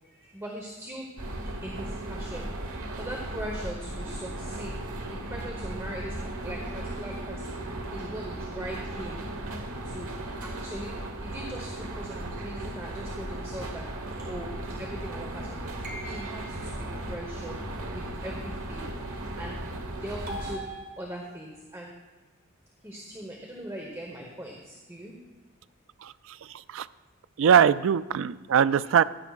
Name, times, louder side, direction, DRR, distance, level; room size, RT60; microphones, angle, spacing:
voice 1, 0.0-1.1 1.6-2.5 3.0-4.7 5.1-6.2 6.4-7.6 7.9-9.2 9.8-10.1 10.4-13.8 14.2-14.5 14.8-17.6 17.9-18.9 19.4-19.6 19.9-20.6 21.0-21.9 22.8-25.2, equal, 15° right, -1 dB, 1.1 m, -40 dB
sound 1, 1.2-20.6, right 1 dB, 90° right, 1.2 m, -36 dB
sound 2, 15.8-16.8 20.3-21.5, right 1 dB, 45° right, 1.7 m, -41 dB
voice 2, 26.0-26.9 27.4-29.0, right 8 dB, 65° right, 16 dB, 0.3 m, -22 dB
15.0 x 10.5 x 2.4 m, 1.2 s
head